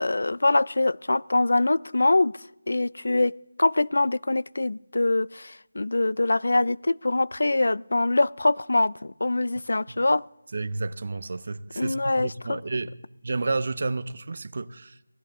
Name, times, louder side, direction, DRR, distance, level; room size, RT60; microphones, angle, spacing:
voice 1, 0.0-2.3 2.7-10.2 11.8-12.6, left 2 dB, 65° left, 0.4 m, -24 dB
voice 2, 10.5-12.9 13.2-15.0, right 3 dB, 40° right, 0.6 m, -31 dB
23.5 x 16.5 x 3.6 m
figure-of-eight pair, 180°, 0 cm